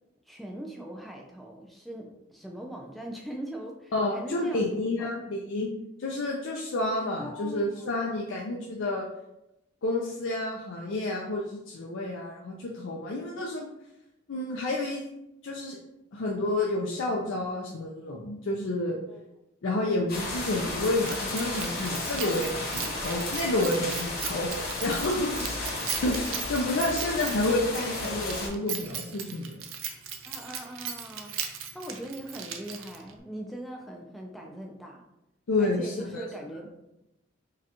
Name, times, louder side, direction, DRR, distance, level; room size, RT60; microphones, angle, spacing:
voice 1, 0.3-4.7 5.0-5.1 7.2-8.0 19.1-19.2 22.7-23.1 26.5-26.6 30.3-35.0 35.6-36.7, right 1 dB, ahead, 1 dB, 0.4 m, -41 dB
voice 2, 3.9-5.7 6.0-9.1 9.8-13.7 14.3-15.0 15.4-15.8 16.1-19.0 19.6-29.6 35.5-36.2, left 2 dB, 70° left, -2 dB, 0.5 m, -30 dB
sound 1, 20.1-28.5, left 2 dB, 45° left, 1.0 m, -33 dB
Keys jangling, 21.0-33.2, right 8 dB, 80° right, 0.5 m, -38 dB
4.8 x 2.3 x 2.9 m, 0.89 s
head